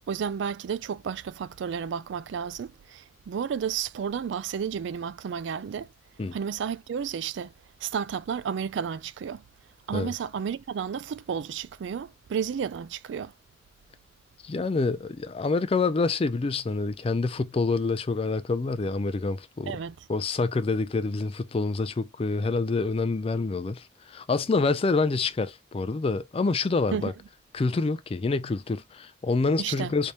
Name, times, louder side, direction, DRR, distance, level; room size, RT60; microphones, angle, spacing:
voice 1, 0.1-5.9 6.3-7.5 7.8-9.4 9.9-13.3 19.7-20.0 26.9-27.1 29.6-29.9, right 7 dB, 65° right, 0.3 m, -32 dB
voice 2, 14.4-19.8 20.1-27.1 27.5-30.1, left 3 dB, 30° left, 0.3 m, -27 dB
3.3 x 2.8 x 2.9 m
head